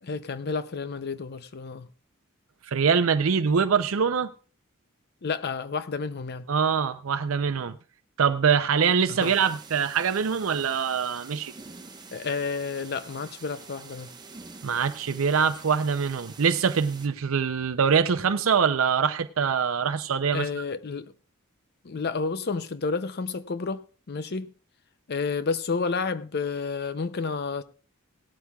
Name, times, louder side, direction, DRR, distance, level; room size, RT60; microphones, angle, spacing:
voice 1, 0.0-1.9 5.2-6.5 9.1-9.3 12.1-14.1 20.3-21.1 21.8-24.5 25.1-27.6, left 4 dB, 50° left, 0.6 m, -30 dB
voice 2, 2.6-4.3 6.5-7.7 8.2-11.5 14.6-20.5, right 6 dB, 75° right, 0.6 m, -24 dB
sound 1, 9.2-17.1, right 4 dB, 20° right, 1.0 m, -46 dB
18.0 x 12.5 x 2.3 m
head